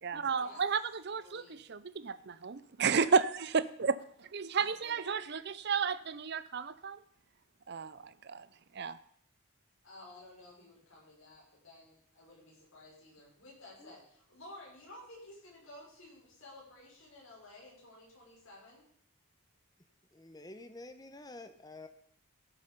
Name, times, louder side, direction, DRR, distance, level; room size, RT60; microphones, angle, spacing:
voice 1, 0.0-7.0 7.7-8.5 8.7-9.0, right 5 dB, 50° right, 16 dB, 0.6 m, -32 dB
voice 2, 1.1-1.6 4.5-5.1 9.8-18.9, left 1 dB, 65° left, -4 dB, 5.9 m, -54 dB
voice 3, 20.1-21.9, left 2 dB, 15° left, 9 dB, 0.9 m, -49 dB
16.0 x 7.1 x 5.4 m, 0.64 s
head